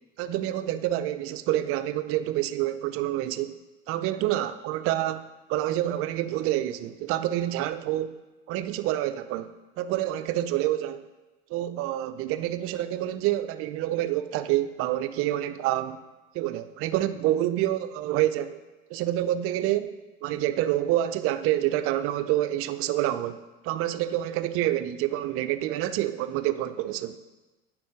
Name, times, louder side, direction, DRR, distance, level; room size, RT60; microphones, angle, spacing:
voice 1, 0.2-3.5 3.9-5.2 5.5-8.2 8.5-11.1 11.5-16.0 16.3-18.6 18.9-27.2, right 13 dB, 45° right, 11 dB, 0.5 m, -27 dB
9.2 x 3.6 x 5.1 m, 1.1 s
hypercardioid pair, 75°, 32 cm